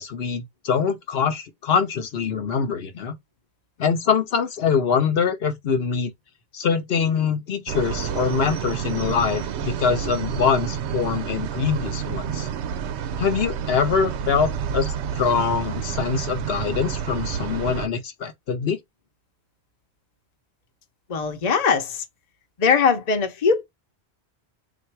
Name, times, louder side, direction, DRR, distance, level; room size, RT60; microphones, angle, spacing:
voice 1, 0.0-3.1 3.8-6.1 6.5-12.5 13.2-18.8, left 6 dB, 65° left, 1.0 m, -24 dB
sound 1, 7.7-17.9, right 8 dB, 85° right, 0.9 m, -29 dB
voice 2, 21.1-22.0 22.6-23.6, left 5 dB, 40° left, 0.8 m, -20 dB
3.7 x 2.6 x 4.5 m
omnidirectional pair, 1.1 m